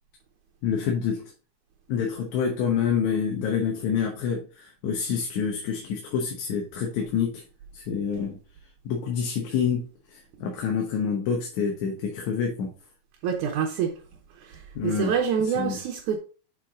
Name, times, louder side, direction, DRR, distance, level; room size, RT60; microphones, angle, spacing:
voice 1, 0.6-1.3 1.9-7.4 7.7-8.4 8.9-12.7 14.8-15.2 15.6-15.8, left 7 dB, 80° left, 2.4 m, -27 dB
voice 2, 13.2-13.9 14.4-16.2, right 7 dB, 90° right, 2.5 m, -26 dB
7.4 x 4.5 x 3.6 m
omnidirectional pair, 3.3 m